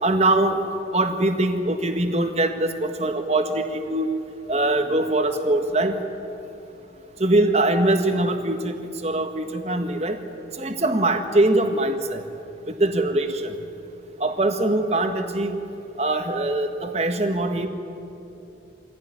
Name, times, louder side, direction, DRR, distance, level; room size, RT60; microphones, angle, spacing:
voice 1, 0.0-0.6 0.9-4.1 4.5-5.9 7.2-10.2 10.6-12.2 12.7-13.5 14.2-15.6 16.0-17.7, right 2 dB, 35° right, 6 dB, 1.6 m, -22 dB
24.5 x 16.5 x 9.9 m, 2.9 s
head